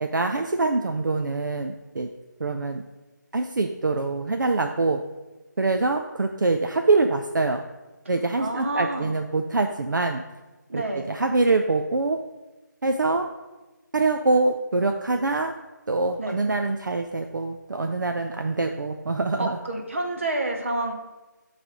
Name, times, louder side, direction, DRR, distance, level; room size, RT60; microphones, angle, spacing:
voice 1, 0.0-2.1 2.4-2.8 3.3-5.0 5.6-7.6 8.1-10.2 10.7-10.8 11.1-12.2 12.8-13.3 13.9-15.5 15.9-19.6, right 3 dB, 70° right, 5 dB, 0.5 m, -24 dB
voice 2, 8.4-9.1 10.7-11.1 16.2-16.4 19.4-20.9, right 2 dB, 40° right, 3 dB, 1.0 m, -28 dB
8.9 x 3.3 x 6.2 m, 1.1 s
figure-of-eight pair, 175°, 11 cm